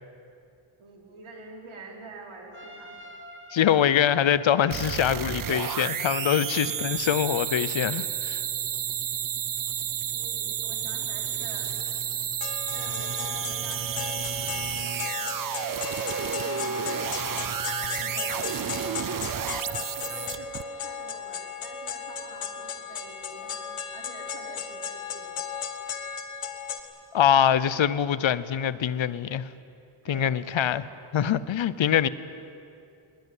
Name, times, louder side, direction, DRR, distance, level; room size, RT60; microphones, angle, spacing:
voice 1, 0.8-3.0 10.1-11.7 12.7-15.4 15.9-18.4 19.4-25.5 25.8-26.0 30.0-30.4, right 3 dB, 70° right, 0 dB, 4.5 m, -46 dB
Trumpet, 2.5-7.0, equal, 25° right, 2.4 m, -47 dB
voice 2, 3.5-8.4 27.1-29.5 30.1-32.1, left 9 dB, 65° left, 16 dB, 0.9 m, -24 dB
sound 1, 4.7-20.6, right 9 dB, 45° right, 0.5 m, -31 dB
sound 2, 12.4-26.8, left 6 dB, 85° left, 1.9 m, -35 dB
21.5 x 21.0 x 9.7 m, 2.6 s
wide cardioid pair, 165°, 50 cm